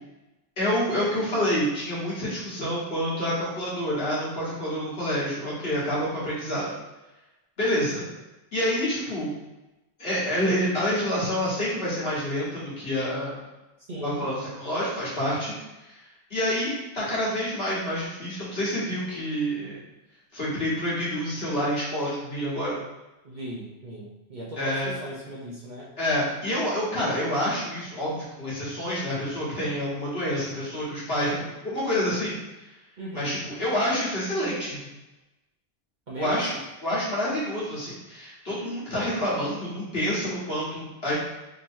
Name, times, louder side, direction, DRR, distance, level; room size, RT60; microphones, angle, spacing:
voice 1, 0.6-6.7 7.6-8.0 8.5-9.3 10.0-13.4 14.0-15.5 15.9-16.0 16.3-19.8 20.3-22.8 24.6-25.0 26.0-32.3 33.1-34.8 36.2-36.5 36.8-41.1, equal, 55° left, -8 dB, 1.6 m, -28 dB
voice 2, 13.9-14.3 23.2-25.9 33.0-33.4 36.1-36.5, right 1 dB, 50° right, -6 dB, 0.6 m, -37 dB
3.8 x 3.0 x 2.6 m, 1.0 s
omnidirectional pair, 1.2 m